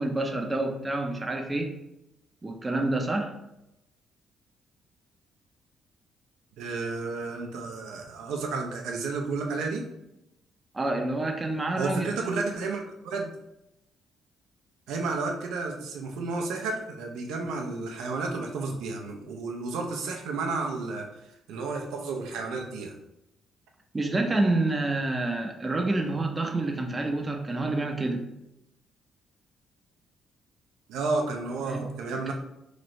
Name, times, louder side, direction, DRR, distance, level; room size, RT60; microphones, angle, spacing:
voice 1, 0.0-1.7 2.4-3.3 10.7-12.3 23.9-28.3 31.7-31.9, right 2 dB, 20° right, 3 dB, 0.5 m, -28 dB
voice 2, 6.6-9.9 11.8-13.3 14.9-21.1 21.5-23.0 30.9-32.3, right 3 dB, 90° right, 2 dB, 0.5 m, -32 dB
3.0 x 2.5 x 3.0 m, 0.87 s
cardioid pair, 90°, 0 cm